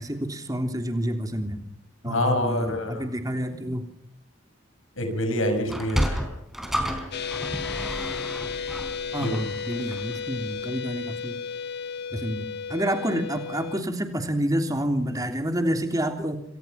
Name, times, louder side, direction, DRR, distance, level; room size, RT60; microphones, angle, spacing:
voice 1, 0.0-1.6 2.0-3.9 9.1-11.4 12.1-16.4, equal, 15° right, 5 dB, 3.3 m, -28 dB
voice 2, 2.0-3.0 5.0-6.1 9.2-9.4, left 1 dB, 70° left, 6 dB, 5.8 m, -26 dB
Sliding door, 5.6-10.2, equal, ahead, 3.9 m, -31 dB
sound 1, 7.1-13.8, left 6 dB, 50° left, 1.5 m, -33 dB
28.0 x 25.0 x 5.9 m, 0.67 s
head